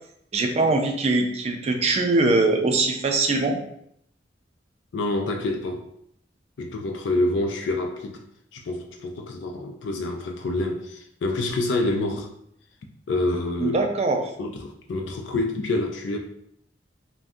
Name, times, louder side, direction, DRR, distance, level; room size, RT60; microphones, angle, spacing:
voice 1, 0.3-3.6 13.6-14.2, right 2 dB, 35° right, 3 dB, 0.4 m, -22 dB
voice 2, 4.9-5.9 6.6-8.2 8.5-12.3 13.1-13.8 14.4-16.2, left 2 dB, 90° left, 3 dB, 0.4 m, -27 dB
2.6 x 2.2 x 3.5 m, 0.72 s
head